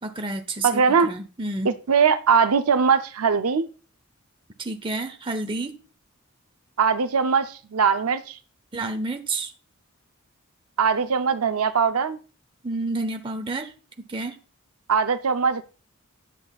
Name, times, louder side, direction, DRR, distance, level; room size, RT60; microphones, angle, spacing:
voice 1, 0.0-1.7 4.6-5.7 8.7-9.5 12.6-13.7 14.1-14.4, right 2 dB, 25° right, 0.7 m, -30 dB
voice 2, 0.6-1.1 1.6-3.7 6.8-8.4 10.8-12.2 14.9-15.6, right 6 dB, 85° right, 0.6 m, -21 dB
9.8 x 7.8 x 2.3 m
head